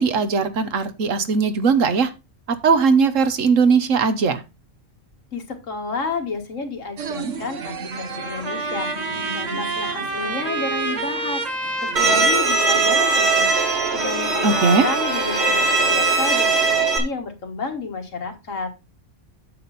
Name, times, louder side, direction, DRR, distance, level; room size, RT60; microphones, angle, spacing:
voice 1, 0.0-2.1 2.6-4.4 14.4-14.9, right 5 dB, 90° right, 11 dB, 1.5 m, -19 dB
voice 2, 5.3-11.5 11.8-13.5 13.9-18.7, left 4 dB, 85° left, 5 dB, 2.1 m, -31 dB
sound 1, 7.0-12.3, right 5 dB, 75° right, 1.4 m, -34 dB
Trumpet, 7.9-16.8, right 2 dB, 30° right, 1.4 m, -28 dB
Bowed string instrument, 12.0-17.0, right 4 dB, 55° right, 2.1 m, -20 dB
9.2 x 7.1 x 4.1 m, 0.26 s
omnidirectional pair, 1.3 m